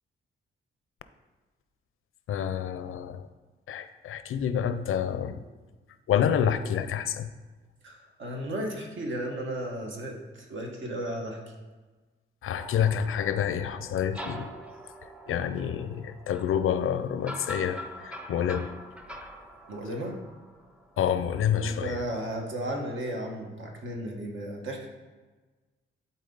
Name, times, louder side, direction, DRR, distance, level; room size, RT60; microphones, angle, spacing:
voice 1, 2.3-3.3 3.7-5.4 6.1-7.3 12.4-14.5 15.3-18.7 21.0-22.0, left 8 dB, 90° left, 11 dB, 0.5 m, -28 dB
voice 2, 7.8-11.4 19.7-20.2 21.5-24.9, right 1 dB, 70° right, 1 dB, 1.4 m, -34 dB
sound 1, 12.5-21.4, equal, 5° right, 0.5 m, -44 dB
12.0 x 4.1 x 3.9 m, 1.3 s
wide cardioid pair, 125°, 21 cm